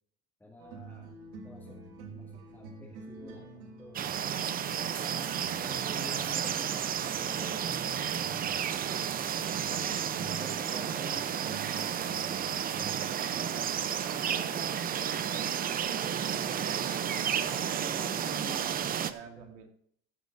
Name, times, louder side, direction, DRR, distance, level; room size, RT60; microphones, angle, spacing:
voice 1, 0.4-1.1 1.4-3.5 3.8-4.1 4.6-5.3 5.6-7.7 10.4-11.7 17.8-19.6, left 1 dB, 5° left, -4 dB, 2.1 m, -49 dB
sound 1, 0.6-18.1, right 3 dB, 70° right, 3.2 m, -49 dB
sound 2, 4.0-19.1, right 9 dB, 25° right, 0.6 m, -32 dB
voice 2, 13.0-13.5 14.0-16.1 16.4-18.3 19.1-19.7, right 8 dB, 90° right, 4 dB, 2.5 m, -48 dB
15.0 x 9.9 x 2.6 m, 0.65 s
cardioid pair, 140°, 35 cm